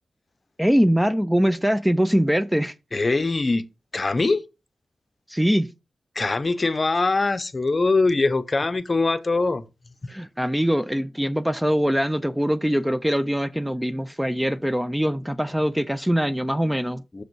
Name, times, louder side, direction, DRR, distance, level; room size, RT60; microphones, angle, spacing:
voice 1, 0.6-2.7 5.3-5.7 10.1-17.0, equal, 5° right, 0.3 m, -22 dB
voice 2, 2.9-3.6 3.9-4.4 6.2-9.6 17.1-17.2, left 3 dB, 35° left, 0.6 m, -22 dB
6.3 x 5.1 x 4.5 m
wide cardioid pair, 90°, 0 cm